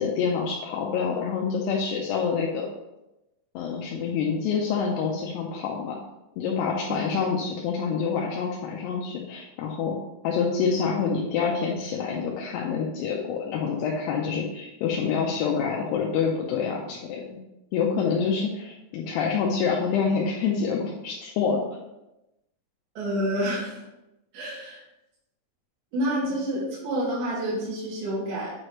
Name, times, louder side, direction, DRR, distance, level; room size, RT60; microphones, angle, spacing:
voice 1, 0.0-2.7 3.5-6.0 6.4-10.0 10.2-17.4 17.7-21.6, left 6 dB, 80° left, -2 dB, 2.6 m, -27 dB
voice 2, 23.0-23.8 24.3-24.8 25.9-28.5, right 1 dB, 75° right, -9 dB, 4.4 m, -28 dB
8.7 x 4.8 x 3.1 m, 0.93 s
omnidirectional pair, 5.0 m